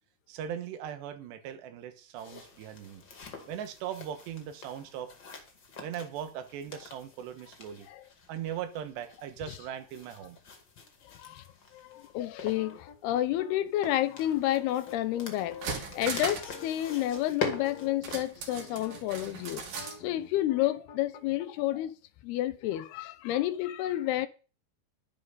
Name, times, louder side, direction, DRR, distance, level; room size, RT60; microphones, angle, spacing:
voice 1, 0.3-3.0 3.5-5.1 5.8-7.9 8.3-10.4, right 9 dB, 80° right, 3.5 m, -39 dB
sound 1, 2.2-18.5, left 4 dB, 35° left, 2.2 m, -44 dB
voice 2, 11.0-11.4 11.7-21.9 22.2-24.3, left 14 dB, 80° left, 2.6 m, -30 dB
sound 2, 12.6-19.2 19.6-21.5, left 6 dB, 55° left, 2.1 m, -48 dB
sound 3, 15.0-15.1 15.4-16.6 16.8-16.9 18.0-20.0 20.3-20.4, right 5 dB, 55° right, 3.6 m, -38 dB
12.0 x 9.8 x 5.5 m
omnidirectional pair, 4.9 m